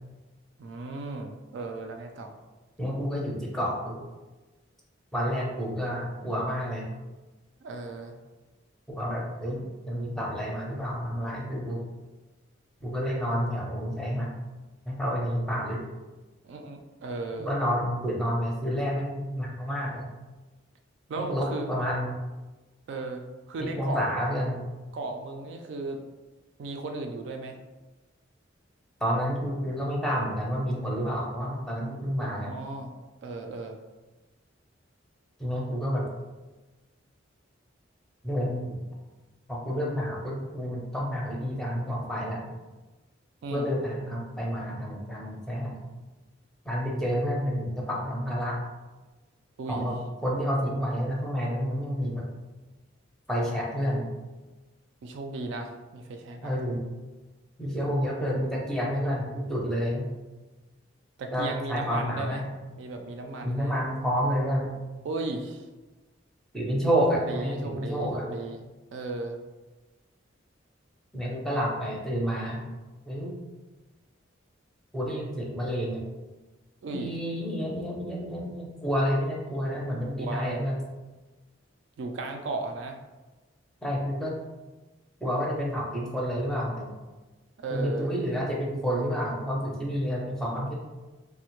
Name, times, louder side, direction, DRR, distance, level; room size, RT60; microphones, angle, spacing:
voice 1, 0.6-2.3 7.6-8.2 16.4-17.5 21.1-21.7 22.9-24.0 24.9-26.0 26.6-27.6 32.3-32.9 33.2-33.8 43.4-43.7 49.6-49.9 55.0-56.5 61.2-62.5 62.8-63.8 65.0-65.6 67.1-69.4 76.8-77.1 80.2-80.6 82.0-83.0 87.6-88.1, right 2 dB, 65° right, 4 dB, 0.3 m, -36 dB
voice 2, 2.8-4.0 5.1-6.9 8.9-11.8 12.8-14.4 14.9-15.8 17.4-20.0 21.2-22.1 23.6-24.6 29.0-32.6 35.4-36.1 38.2-38.8 39.5-42.4 43.5-45.8 46.6-48.6 49.7-52.3 53.3-54.1 56.4-56.8 57.6-60.1 61.3-62.5 63.4-64.7 66.5-68.3 71.1-72.6 73.1-73.3 74.9-76.0 76.9-80.8 83.8-84.3 85.2-86.9 87.7-90.7, equal, 5° left, -3 dB, 0.5 m, -29 dB
3.2 x 2.1 x 3.0 m, 1.2 s
head